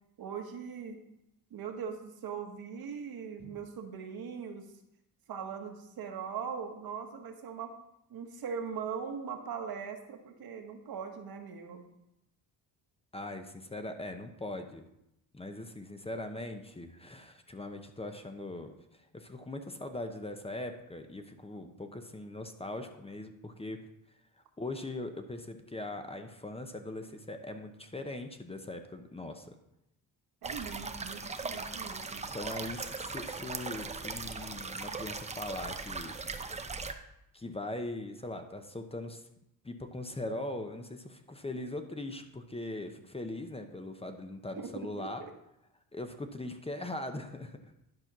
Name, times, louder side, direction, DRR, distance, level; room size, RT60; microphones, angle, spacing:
voice 1, 0.2-1.0 1.5-4.7 5.3-7.7 8.1-11.8 30.4-32.3 44.5-44.7 45.0-45.3, right 6 dB, 60° right, 5 dB, 1.5 m, -40 dB
voice 2, 13.1-14.8 15.3-18.7 19.1-23.8 24.6-29.6 32.3-36.1 37.3-39.2 39.6-45.2 45.9-47.7, left 2 dB, 15° left, 6 dB, 0.8 m, -40 dB
sound 1, 30.4-36.9, right 4 dB, 15° right, 0.6 m, -39 dB
10.5 x 4.3 x 6.0 m, 0.85 s
cardioid pair, 105°, 41 cm